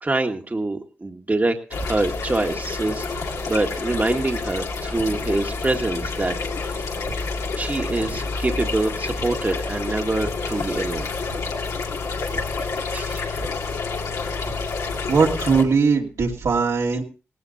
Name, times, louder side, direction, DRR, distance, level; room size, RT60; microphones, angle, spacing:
voice 1, 0.0-6.9 7.6-11.1 12.6-13.4, right 2 dB, 30° right, 4 dB, 1.6 m, -26 dB
sound 1, 1.7-15.6, left 4 dB, 80° left, 2.3 m, -28 dB
sound 2, 1.8-1.9 2.8-3.0 3.9-4.0 4.9-5.0 6.0-6.1 7.1-7.2 7.6-7.8 8.1-8.2 9.2-9.3 10.2-10.3 11.3-11.4 12.3-12.4 13.4-13.5 14.5-14.6 15.2-15.6, right 3 dB, 60° right, 2.3 m, -35 dB
voice 2, 15.1-17.0, right 5 dB, 75° right, -1 dB, 2.6 m, -20 dB
18.0 x 16.5 x 2.7 m, 0.33 s
supercardioid pair, 45°, 5 cm